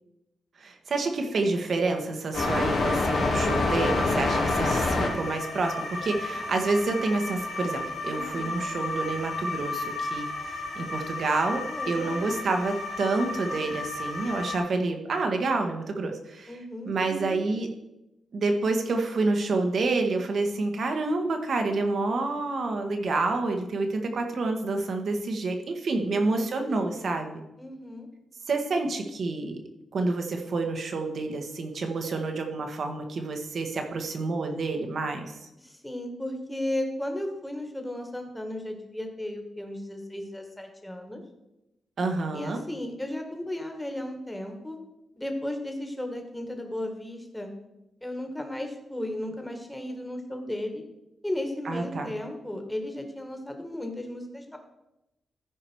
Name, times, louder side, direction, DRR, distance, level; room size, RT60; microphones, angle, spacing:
voice 1, 0.6-10.3 10.7-16.6 16.8-17.7 18.3-27.4 28.5-29.6 29.9-35.5 42.0-42.6 51.6-52.1, right 3 dB, 60° right, 4 dB, 1.4 m, -28 dB
sound 1, 2.3-14.6, left 2 dB, 80° left, 2.9 m, -29 dB
voice 2, 8.1-8.6 11.7-12.3 16.5-17.2 26.1-27.2 27.6-28.1 35.6-41.2 42.3-44.8 45.2-47.5 48.0-50.8 51.2-54.6, left 1 dB, 10° left, 4 dB, 1.8 m, -35 dB
14.0 x 4.9 x 4.7 m, 0.92 s
cardioid pair, 80°, 0 cm